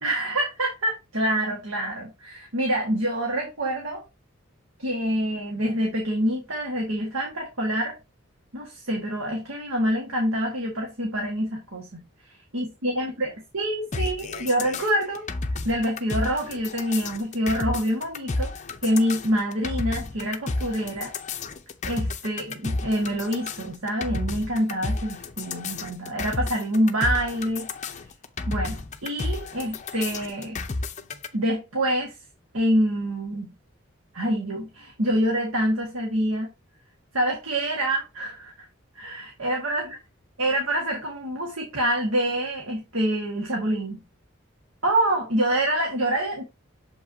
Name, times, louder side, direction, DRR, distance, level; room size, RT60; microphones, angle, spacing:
voice 1, 0.0-4.0 4.8-8.0 8.5-12.0 12.5-15.2 15.6-18.5 18.8-21.1 21.8-27.7 28.5-30.6 31.3-32.1 32.5-33.5 34.1-36.5 37.1-38.7 38.9-40.0 40.4-44.0 44.8-46.4, right 1 dB, 90° right, 1.7 m, -26 dB
sound 1, 13.9-31.3, left 3 dB, 35° left, 0.6 m, -31 dB
7.1 x 5.4 x 2.7 m
head